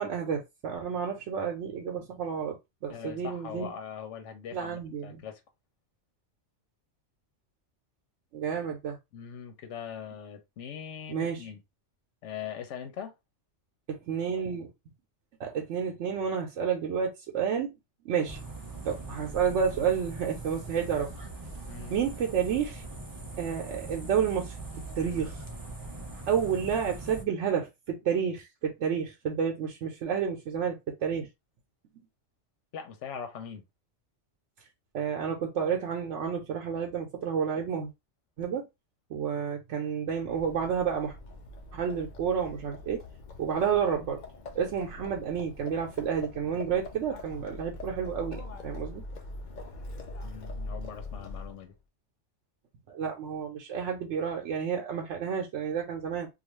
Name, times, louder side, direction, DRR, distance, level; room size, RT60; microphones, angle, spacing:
voice 1, 0.0-2.6 2.8-3.7 4.5-5.2 8.3-9.0 11.1-11.5 13.9-14.7 15.4-17.7 18.0-18.4 18.8-21.1 21.9-22.8 23.4-24.6 25.0-25.4 26.3-31.3 34.9-37.9 38.4-38.7 39.1-41.1 41.7-43.0 43.4-44.2 44.5-49.0 52.9-56.3, right 7 dB, 85° right, 0.9 m, -30 dB
voice 2, 2.9-5.4 9.1-11.6 12.2-13.1 21.7-22.0 25.0-25.3 32.7-33.6 50.2-51.7, left 7 dB, 90° left, 0.9 m, -41 dB
sound 1, 18.3-27.2, right 2 dB, 35° right, 0.3 m, -41 dB
Livestock farm animals working animals, 40.1-51.7, left 2 dB, 55° left, 0.6 m, -43 dB
2.4 x 2.3 x 2.9 m
omnidirectional pair, 1.2 m